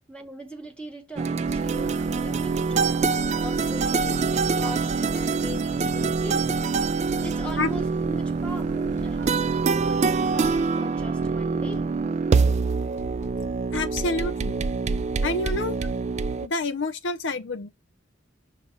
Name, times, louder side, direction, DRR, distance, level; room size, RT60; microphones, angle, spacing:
voice 1, 0.0-2.9 3.4-6.5 7.2-11.9, equal, 5° left, 0.9 m, -40 dB
sound 1, 1.2-16.5, right 4 dB, 35° right, 0.3 m, -25 dB
sound 2, 1.5-10.7, right 1 dB, 60° right, 0.8 m, -39 dB
sound 3, 9.0-10.5 11.0-12.5 13.0-14.5 15.0-15.2, equal, 40° left, 0.8 m, -44 dB
voice 2, 13.7-14.6 15.2-15.8 16.4-17.7, left 3 dB, 70° left, 0.7 m, -28 dB
6.5 x 2.9 x 5.0 m
head